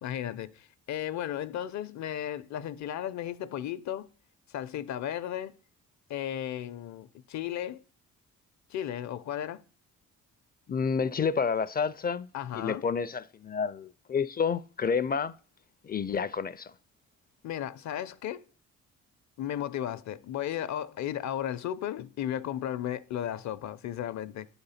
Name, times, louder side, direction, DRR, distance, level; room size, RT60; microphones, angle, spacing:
voice 1, 0.0-4.1 4.5-5.6 6.1-7.8 8.7-9.6 12.3-12.8 17.4-18.4 19.4-24.5, left 10 dB, 70° left, 0.7 m, -35 dB
voice 2, 10.7-12.3 12.5-15.3 15.8-16.7, left 6 dB, 30° left, 0.4 m, -29 dB
9.6 x 3.9 x 5.7 m
cardioid pair, 90°, 30 cm